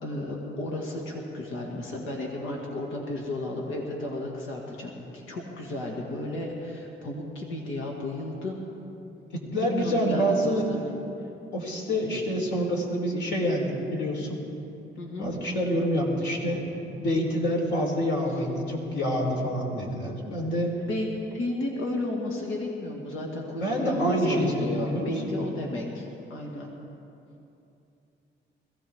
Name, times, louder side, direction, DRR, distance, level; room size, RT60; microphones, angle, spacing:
voice 1, 0.0-8.6 9.7-10.8 15.0-15.3 20.9-26.7, left 1 dB, 85° left, -1 dB, 2.0 m, -33 dB
voice 2, 9.3-10.7 11.5-14.4 15.2-16.6 16.9-20.7 23.6-25.4, equal, 65° left, -1 dB, 3.8 m, -27 dB
22.0 x 16.0 x 3.6 m, 2.8 s
cardioid pair, 90°, 20 cm